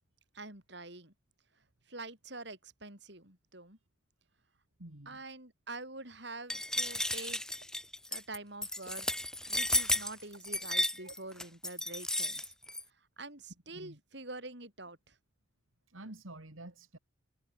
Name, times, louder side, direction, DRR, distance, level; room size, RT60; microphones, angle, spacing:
voice 1, 0.3-1.1 1.9-3.8 5.0-7.4 8.1-12.5 12.9-15.2, right 2 dB, 55° right, 6.7 m, -46 dB
voice 2, 4.8-5.2 11.0-11.1 13.7-14.0 15.9-17.0, right 1 dB, 80° right, 2.8 m, -49 dB
sound 1, 6.5-12.8, left 1 dB, 5° left, 0.9 m, -33 dB
head